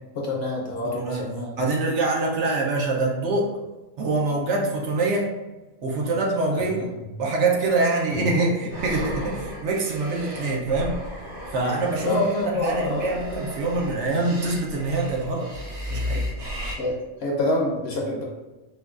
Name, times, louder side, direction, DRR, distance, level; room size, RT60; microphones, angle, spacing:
voice 1, 0.2-1.5 12.0-13.1 16.8-18.2, left 1 dB, 60° left, -1 dB, 0.7 m, -26 dB
voice 2, 0.8-1.3 1.6-3.6 4.0-5.3 5.8-6.9 7.2-12.2 12.5-15.5 15.9-16.3, right 3 dB, 70° right, -1 dB, 0.8 m, -25 dB
sound 1, 8.7-16.7, left 1 dB, 85° right, 1.4 m, -34 dB
4.4 x 2.3 x 2.4 m, 1.1 s
omnidirectional pair, 1.4 m